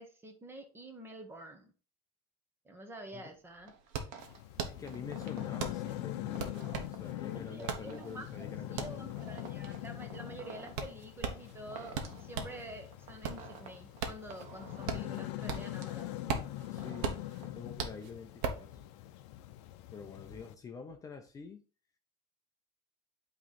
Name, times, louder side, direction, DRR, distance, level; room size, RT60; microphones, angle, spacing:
voice 1, 0.0-1.7 2.6-3.7 7.3-8.3 8.7-16.1, right 1 dB, 15° right, 1.2 m, -48 dB
sound 1, 3.0-3.1 3.3-12.6 13.0-15.9 16.1-18.7, right 5 dB, 90° right, 1.1 m, -39 dB
sound 2, 3.7-17.5, right 7 dB, 70° right, 1.2 m, -53 dB
sound 3, 4.2-20.5, left 15 dB, 90° left, 0.6 m, -43 dB
voice 2, 4.6-9.0 16.7-17.1 17.4-18.8 19.9-21.6, left 5 dB, 25° left, 0.6 m, -46 dB
8.8 x 3.2 x 4.2 m
cardioid pair, 140°, 14 cm